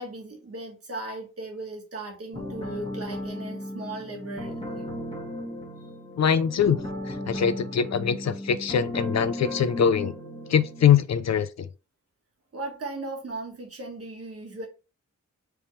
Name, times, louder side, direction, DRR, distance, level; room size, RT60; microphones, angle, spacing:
voice 1, 0.0-4.9 12.5-14.7, right 2 dB, 50° right, 1.5 m, -37 dB
sound 1, 2.3-10.8, left 1 dB, 20° left, 1.3 m, -35 dB
voice 2, 6.2-6.8 7.1-10.1 10.5-11.7, left 8 dB, 60° left, 0.5 m, -23 dB
4.5 x 3.5 x 3.1 m
wide cardioid pair, 145°, 30 cm